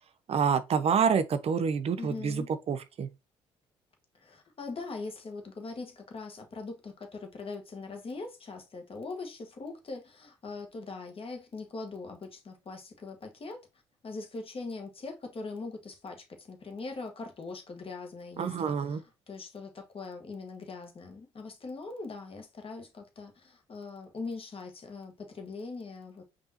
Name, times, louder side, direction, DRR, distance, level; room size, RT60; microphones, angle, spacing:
voice 1, 0.3-3.1 18.4-19.0, right 6 dB, 45° right, 0.5 m, -27 dB
voice 2, 2.0-2.5 4.2-13.7 14.0-19.0 19.3-26.2, left 3 dB, 40° left, 1.4 m, -41 dB
5.4 x 2.8 x 2.8 m
hypercardioid pair, 60°, 14 cm